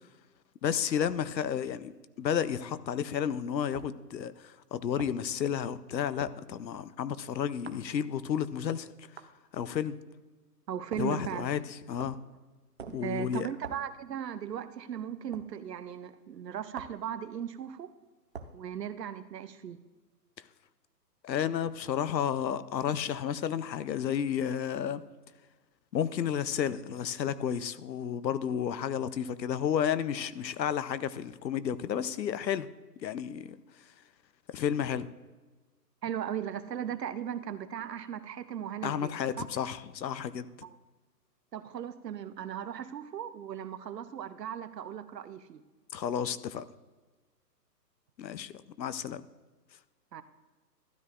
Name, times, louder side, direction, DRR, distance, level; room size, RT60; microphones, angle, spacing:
voice 1, 0.6-1.9 2.2-8.9 9.5-10.0 11.0-11.6 11.9-12.2 12.9-13.5 21.2-25.0 25.9-32.7 33.0-33.6 34.5-35.1 38.8-40.5 45.9-46.6 48.2-48.5 48.8-49.2, left 8 dB, 90° left, 0.7 m, -31 dB
sound 1, 1.0-1.2 2.4-2.6 3.7-3.9 5.0-5.2 6.2-6.4 7.6-7.9 9.2-9.3 10.9-11.2 12.0-12.3 12.8-13.1 13.6-13.9 15.3-15.5 16.7-17.0 18.3-18.6, right 5 dB, 45° right, 0.5 m, -45 dB
voice 2, 10.7-11.5 13.0-17.9 18.5-19.8 36.0-39.5 40.6-40.8 41.5-45.6 50.1-50.2, right 9 dB, 75° right, 0.8 m, -37 dB
13.0 x 9.9 x 2.5 m
hypercardioid pair, 155°, 50 cm